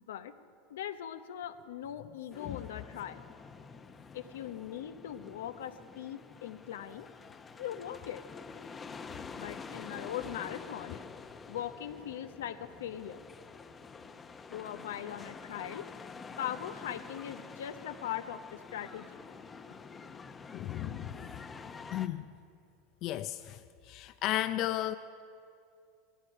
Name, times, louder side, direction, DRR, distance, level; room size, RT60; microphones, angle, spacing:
voice 1, 0.7-3.2 4.1-7.1 7.6-8.2 9.4-11.0 11.5-13.2 14.5-15.9 16.4-19.2, left 10 dB, 85° left, 10 dB, 0.8 m, -40 dB
sound 1, 2.3-22.1, left 5 dB, 25° left, 0.8 m, -48 dB
voice 2, 20.5-21.4 21.9-22.3 23.0-24.9, left 13 dB, 55° left, 11 dB, 0.5 m, -35 dB
17.0 x 14.5 x 5.5 m, 2.5 s
supercardioid pair, 105°, 0 cm